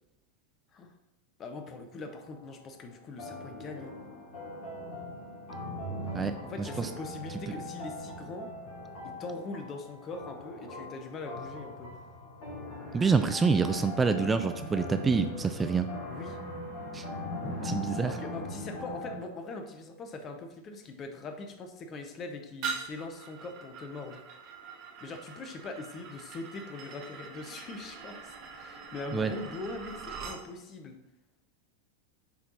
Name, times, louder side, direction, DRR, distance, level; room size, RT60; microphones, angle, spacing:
voice 1, 1.4-4.0 6.4-8.5 9.0-11.9 16.0-16.4 18.1-24.2 25.0-31.0, left 3 dB, 30° left, 5 dB, 0.7 m, -42 dB
sound 1, 2.1-2.5 3.2-19.2, left 1 dB, 45° left, 2.4 m, -40 dB
voice 2, 12.9-15.9 16.9-17.0 17.6-18.2 29.1-29.3, right 5 dB, 15° right, 9 dB, 0.4 m, -27 dB
sound 2, 22.6-30.4, right 6 dB, 40° right, 1.4 m, -43 dB
6.9 x 4.4 x 4.0 m, 0.96 s
figure-of-eight pair, 90°, 0 cm